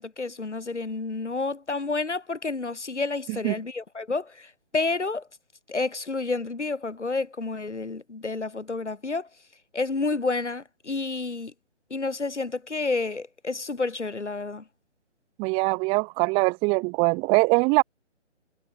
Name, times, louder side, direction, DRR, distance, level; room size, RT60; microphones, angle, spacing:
voice 1, 0.0-5.2 5.7-9.3 9.7-11.5 11.9-14.6, left 3 dB, 70° left, 6.2 m, -30 dB
voice 2, 15.4-17.8, right 29 dB, 15° right, 1.9 m, -22 dB
figure-of-eight pair, 140°, 36 cm